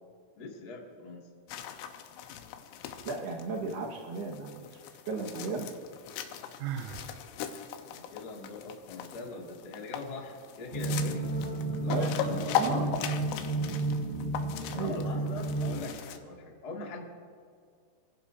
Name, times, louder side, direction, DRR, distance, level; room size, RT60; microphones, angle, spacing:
voice 1, 0.3-1.2 7.8-11.3 11.8-12.6 14.8-17.0, left 3 dB, 55° left, -2 dB, 1.0 m, -42 dB
sound 1, 1.5-16.2, left 9 dB, 80° left, 3.3 m, -39 dB
voice 2, 3.1-4.6 5.1-5.7 11.9-13.0 14.7-15.2, right 3 dB, 65° right, 1 dB, 3.0 m, -35 dB
Sigh, 6.6-7.1, right 9 dB, 85° right, 3.6 m, -36 dB
sound 2, 10.7-15.9, right 2 dB, 10° left, 2.4 m, -32 dB
28.0 x 16.0 x 2.7 m, 2.2 s
omnidirectional pair, 6.0 m